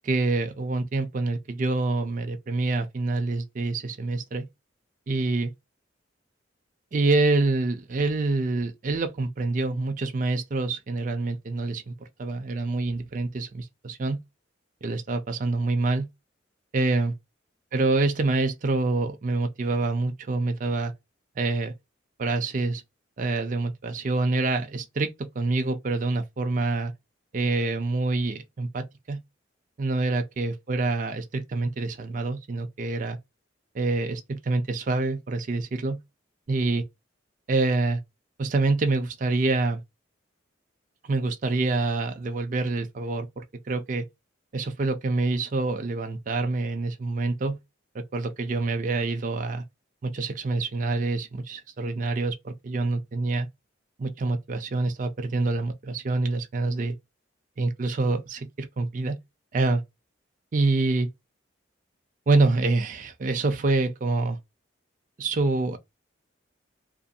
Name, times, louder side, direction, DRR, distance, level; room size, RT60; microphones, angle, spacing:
voice 1, 0.0-4.5 5.1-5.5 6.9-11.9 12.2-14.2 14.8-16.1 16.7-17.1 17.7-20.9 21.4-21.7 22.2-22.8 23.2-26.9 27.3-29.2 29.8-33.2 33.7-36.0 36.5-36.8 37.5-38.0 38.4-39.8 41.0-44.1 44.5-47.6 47.9-49.6 50.0-53.5 54.0-57.0 57.6-59.2 59.5-59.8 60.5-61.1 62.3-64.4 65.2-65.8, right 3 dB, 40° right, 0.4 m, -26 dB
2.6 x 2.5 x 2.2 m
head